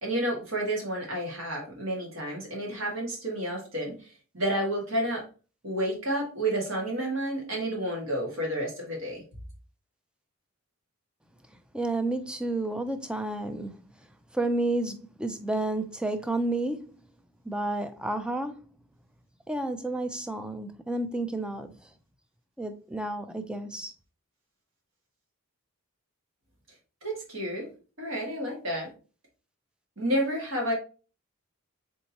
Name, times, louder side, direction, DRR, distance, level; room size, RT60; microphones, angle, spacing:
voice 1, 0.0-5.2 5.6-9.2 27.0-27.7 28.0-28.9 30.0-30.7, right 1 dB, 65° right, 1.9 m, -30 dB
voice 2, 11.7-13.8 14.3-16.9 17.5-18.6 19.5-21.7 22.6-23.9, right 2 dB, 5° right, 0.3 m, -31 dB
4.2 x 3.5 x 2.8 m
head